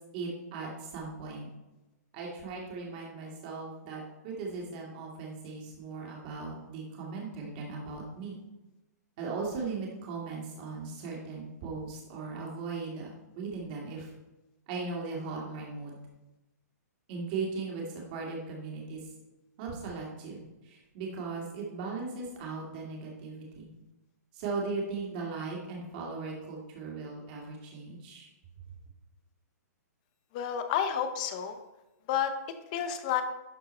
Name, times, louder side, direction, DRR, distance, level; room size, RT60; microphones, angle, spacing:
voice 1, 0.1-1.5 2.1-8.3 9.2-14.1 14.7-16.0 17.1-19.1 19.6-23.7 24.3-28.3, right 4 dB, 30° right, -2 dB, 2.2 m, -38 dB
voice 2, 30.3-31.6 32.1-32.3 32.7-33.2, left 9 dB, 25° left, 9 dB, 0.7 m, -30 dB
11.5 x 4.5 x 4.4 m, 1.0 s
hypercardioid pair, 170°, 9 cm